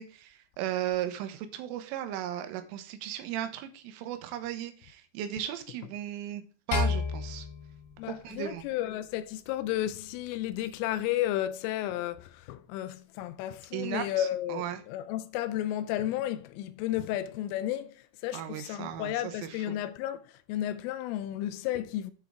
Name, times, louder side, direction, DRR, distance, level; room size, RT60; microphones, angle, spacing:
voice 1, 0.0-6.4 6.7-7.5 8.1-8.6 13.7-14.8 18.3-19.8, right 11 dB, 80° right, 3.3 m, -36 dB
sound 1, 6.7-9.1, left 5 dB, 65° left, 4.4 m, -32 dB
voice 2, 8.0-22.1, left 13 dB, 85° left, 3.0 m, -33 dB
8.3 x 6.2 x 3.5 m
omnidirectional pair, 5.8 m